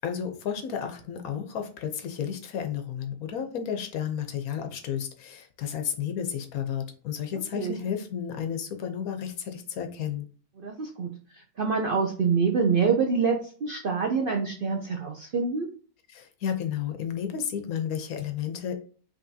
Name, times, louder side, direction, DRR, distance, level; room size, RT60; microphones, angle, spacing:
voice 1, 0.0-10.3 16.1-18.7, left 8 dB, 75° left, 6 dB, 1.2 m, -32 dB
voice 2, 10.6-11.1 11.6-15.7, right 5 dB, 60° right, 1 dB, 0.6 m, -26 dB
5.2 x 2.8 x 2.7 m, 0.40 s
omnidirectional pair, 1.5 m